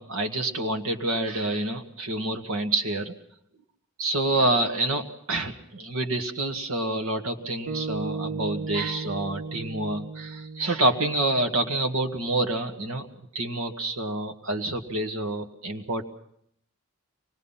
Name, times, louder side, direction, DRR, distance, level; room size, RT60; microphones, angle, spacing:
voice 1, 0.0-3.1 4.0-13.1 13.3-16.0, right 2 dB, 75° right, 4 dB, 1.9 m, -27 dB
sound 1, 7.7-12.0, right 4 dB, 55° right, 1.2 m, -36 dB
25.0 x 20.0 x 5.7 m, 0.70 s
head